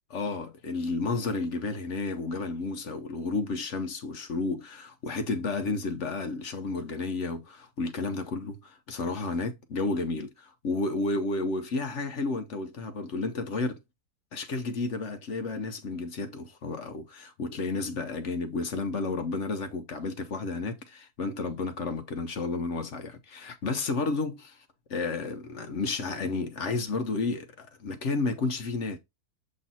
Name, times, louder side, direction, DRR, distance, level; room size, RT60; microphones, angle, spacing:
voice 1, 0.1-13.8 14.3-24.6 24.9-29.0, left 3 dB, 55° left, 1.1 m, -32 dB
7.6 x 3.1 x 4.1 m
omnidirectional pair, 1.7 m